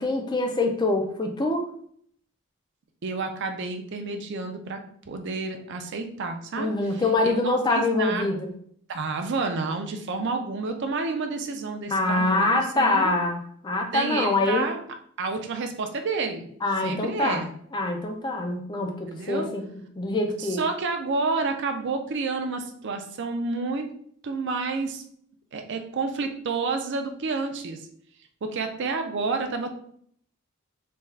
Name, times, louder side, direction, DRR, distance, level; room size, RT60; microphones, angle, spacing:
voice 1, 0.0-1.7 6.6-8.5 11.9-14.7 16.6-17.4 17.7-19.6 20.0-20.6, left 2 dB, 20° left, 3 dB, 0.4 m, -25 dB
voice 2, 3.0-4.8 5.1-8.3 8.9-13.2 13.9-14.8 15.2-16.5 16.8-17.5 19.1-19.5 20.4-23.9 24.2-25.0 25.5-27.9 28.4-29.7, right 4 dB, 50° right, 5 dB, 0.4 m, -30 dB
3.4 x 2.3 x 3.3 m, 0.64 s
head